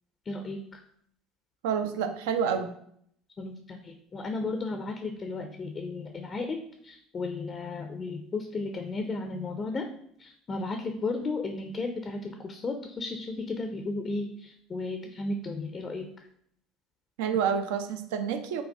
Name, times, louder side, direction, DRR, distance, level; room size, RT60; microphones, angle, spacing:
voice 1, 0.3-0.8 1.9-2.0 3.4-6.6 6.8-9.9 10.2-16.1, left 3 dB, 30° left, 5 dB, 0.5 m, -34 dB
voice 2, 1.6-2.7 17.2-18.6, right 7 dB, 65° right, 7 dB, 0.4 m, -28 dB
5.2 x 2.3 x 3.4 m, 0.66 s
figure-of-eight pair, 65°, 0 cm